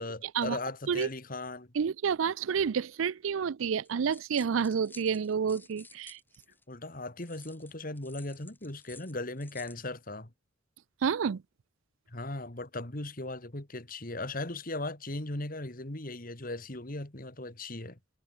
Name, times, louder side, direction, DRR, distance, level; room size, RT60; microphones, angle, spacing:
voice 1, 0.0-1.7 6.7-10.3 12.1-18.0, left 2 dB, 45° left, 2.4 m, -38 dB
voice 2, 1.7-6.2 11.0-11.4, right 6 dB, 85° right, 0.4 m, -29 dB
sound 1, 3.8-6.6 7.2-9.9, left 3 dB, 10° left, 4.2 m, -54 dB
head